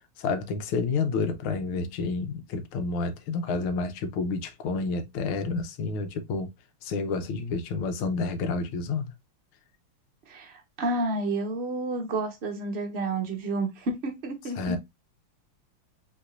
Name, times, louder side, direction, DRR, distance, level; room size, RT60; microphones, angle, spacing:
voice 1, 0.2-6.5 6.8-9.1 14.6-14.8, left 4 dB, 85° left, 1.6 m, -29 dB
voice 2, 10.3-14.8, right 2 dB, 40° right, 1.0 m, -30 dB
5.4 x 3.7 x 2.5 m
omnidirectional pair, 2.3 m